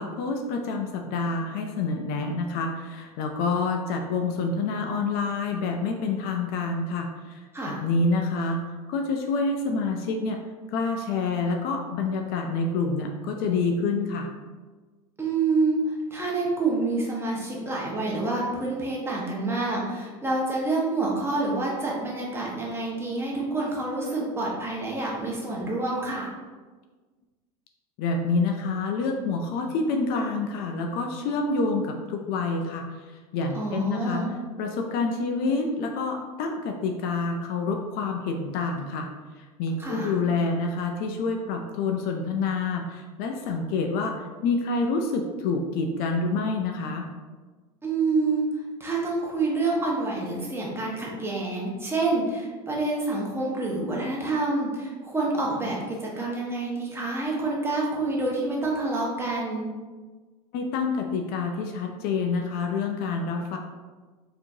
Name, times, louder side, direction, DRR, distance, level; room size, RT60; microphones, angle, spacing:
voice 1, 0.0-8.6 8.9-10.4 10.7-14.3 28.0-32.8 33.3-34.3 34.6-39.1 39.4-47.1 60.5-63.6, left 3 dB, 55° left, 3 dB, 0.5 m, -27 dB
voice 2, 15.2-26.3 33.5-34.3 39.8-40.2 47.8-48.5 48.8-59.7, right 3 dB, 10° right, -4 dB, 1.1 m, -27 dB
4.1 x 2.9 x 2.7 m, 1.3 s
hypercardioid pair, 100°, 19 cm